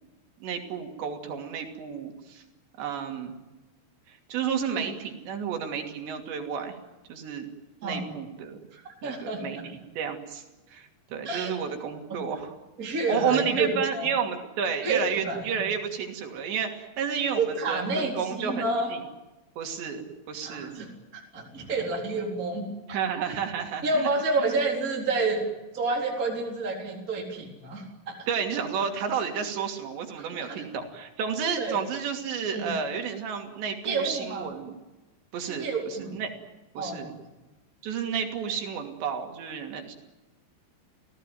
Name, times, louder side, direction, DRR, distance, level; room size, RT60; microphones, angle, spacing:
voice 1, 0.4-2.4 2.8-3.3 4.1-6.8 7.1-7.5 7.8-8.6 9.0-9.6 10.0-12.5 13.1-19.0 19.6-20.7 21.6-21.7 22.9-24.1 24.4-24.5 28.3-34.7 35.3-36.3 36.7-37.1 37.8-40.0, right 7 dB, 80° right, 4 dB, 5.0 m, -31 dB
voice 2, 8.7-9.7 11.2-11.5 12.8-14.1 14.8-15.5 17.4-18.9 20.4-20.9 21.1-22.6 23.8-25.4 25.7-28.2 30.2-30.7 31.6-31.8 32.5-32.7 33.8-34.5 35.5-36.2 36.8-37.1, right 3 dB, 20° right, -1 dB, 3.9 m, -29 dB
29.0 x 17.5 x 9.3 m, 1.1 s
omnidirectional pair, 5.0 m